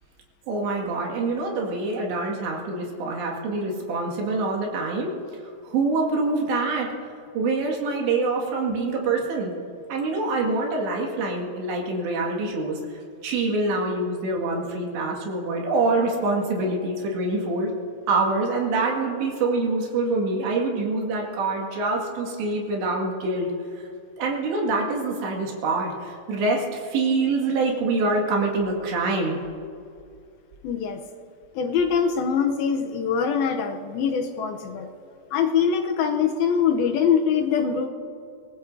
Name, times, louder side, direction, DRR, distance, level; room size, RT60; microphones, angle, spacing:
voice 1, 0.5-5.1 5.6-7.1 7.3-9.5 9.9-12.8 13.2-17.7 18.1-23.8 24.2-29.4, right 3 dB, 90° right, -1 dB, 4.3 m, -25 dB
voice 2, 30.6-31.0 31.6-34.9 35.3-37.9, left 7 dB, 75° left, 4 dB, 2.4 m, -23 dB
24.0 x 18.5 x 2.7 m, 2.4 s
omnidirectional pair, 4.9 m